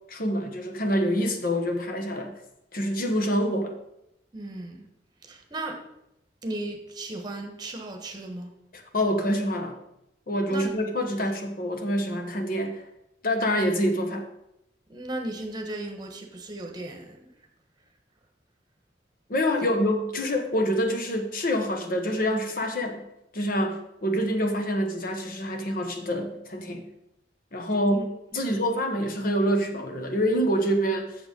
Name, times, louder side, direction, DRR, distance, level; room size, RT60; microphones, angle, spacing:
voice 1, 0.1-2.3 2.7-3.8 8.7-9.7 10.3-12.8 13.2-14.2 19.3-23.0 23.3-26.9 27.5-31.2, equal, 50° left, 4 dB, 1.1 m, -26 dB
voice 2, 4.3-4.8 5.2-5.8 6.4-8.5 10.5-10.7 14.9-17.2 27.9-28.0 28.4-28.6, right 2 dB, 25° right, 3 dB, 1.3 m, -36 dB
7.9 x 6.9 x 5.3 m, 0.84 s
head